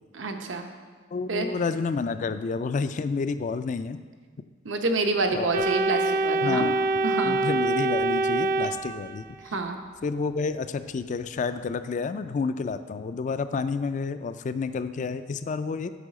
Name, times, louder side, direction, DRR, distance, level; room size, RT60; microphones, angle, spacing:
voice 1, 0.1-0.7 1.3-1.5 4.6-6.6 7.0-7.3 9.4-9.8, right 3 dB, 80° right, 5 dB, 0.8 m, -27 dB
voice 2, 1.1-4.0 5.3-5.7 6.4-6.8 7.2-9.6 10.0-15.9, left 4 dB, 40° left, 11 dB, 0.3 m, -29 dB
Organ, 5.5-9.5, right 2 dB, 45° right, 0.5 m, -25 dB
8.3 x 4.8 x 6.3 m, 1.5 s
head